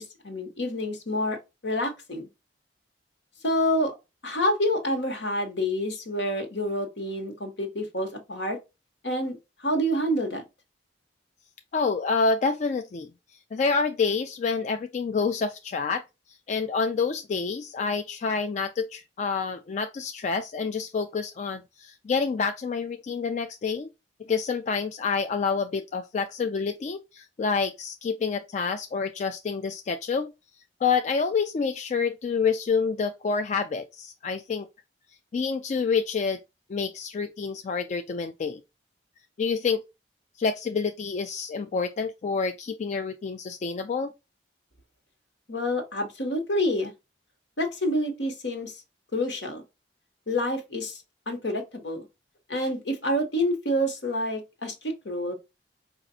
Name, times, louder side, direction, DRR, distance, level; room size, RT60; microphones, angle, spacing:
voice 1, 0.0-1.4 1.6-2.3 3.4-3.9 4.2-8.6 9.0-10.4 45.5-46.9 47.6-48.8 49.1-49.6 50.3-52.1 52.5-55.3, equal, 75° left, 1.3 m, -28 dB
voice 2, 11.7-13.1 13.5-16.0 16.3-23.9 24.2-30.3 30.8-34.7 35.3-36.4 36.7-38.6 39.4-39.8 40.4-44.1, left 5 dB, 40° left, 0.3 m, -28 dB
5.0 x 2.5 x 2.6 m
head